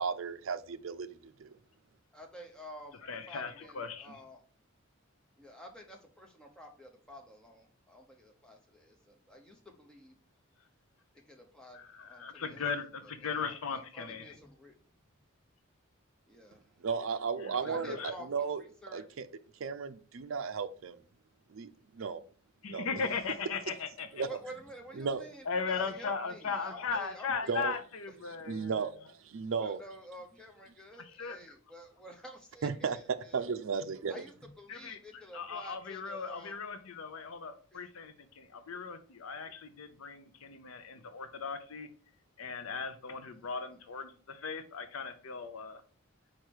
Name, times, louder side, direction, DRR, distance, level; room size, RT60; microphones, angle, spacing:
voice 1, 0.0-1.5 16.8-18.6 18.9-19.3 19.6-21.0 21.5-22.2 22.7-22.9 24.1-24.3 25.0-25.2 27.5-27.8 28.5-28.9 29.2-29.8 32.6-33.0 33.3-34.2, right 5 dB, 70° right, 0.5 m, -34 dB
voice 2, 2.1-3.0 3.3-4.4 5.4-10.2 11.1-14.8 16.3-16.7 17.6-19.0 24.2-27.8 28.1-28.2 29.6-33.4 34.1-36.6 37.7-37.9 43.3-43.5, equal, 5° left, 1.0 m, -50 dB
voice 3, 3.1-4.1 11.7-14.3 17.4-17.6 17.8-18.1 22.6-24.2 25.5-28.9 31.2-31.4 34.7-35.0 35.3-41.9 42.4-45.8, left 5 dB, 85° left, 0.7 m, -38 dB
4.8 x 4.4 x 4.6 m
head